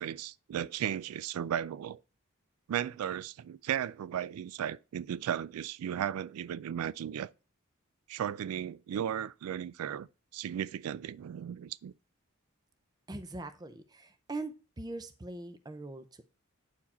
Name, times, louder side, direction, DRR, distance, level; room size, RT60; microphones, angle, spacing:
voice 1, 0.0-2.0 2.7-7.3 8.1-10.1 10.3-11.9, right 9 dB, 85° right, 0.3 m, -35 dB
voice 2, 13.1-16.2, right 2 dB, 20° right, 0.5 m, -42 dB
8.6 x 4.7 x 4.2 m
head